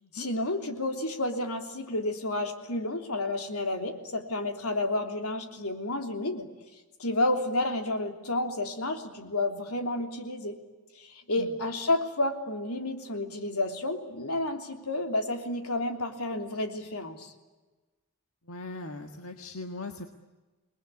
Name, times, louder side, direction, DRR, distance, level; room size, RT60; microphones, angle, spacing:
voice 1, 0.1-6.5 7.0-10.6 11.0-17.3, left 2 dB, 85° left, 5 dB, 3.3 m, -31 dB
voice 2, 18.4-20.1, left 2 dB, 70° left, 5 dB, 1.7 m, -40 dB
28.5 x 20.5 x 9.7 m, 1.2 s
head